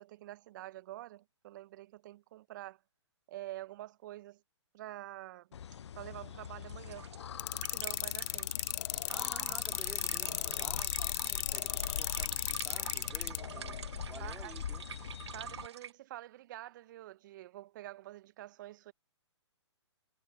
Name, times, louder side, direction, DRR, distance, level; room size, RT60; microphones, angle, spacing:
voice 1, 0.0-2.8 3.3-4.4 4.7-5.5 6.0-7.1 7.5-8.5 9.4-9.7 10.3-10.8 13.5-13.7 14.2-14.6 15.3-18.9, right 15 dB, 40° right, 1.4 m, -47 dB
sound 1, 5.5-15.7, left 8 dB, 70° left, 0.4 m, -43 dB
sound 2, 6.4-15.9, right 8 dB, 65° right, 0.7 m, -47 dB
sound 3, 7.4-13.4, left 25 dB, 30° left, 0.8 m, -34 dB
voice 2, 9.1-13.8 14.1-14.9, right 3 dB, 5° right, 4.8 m, -52 dB
figure-of-eight pair, 130°, 15 cm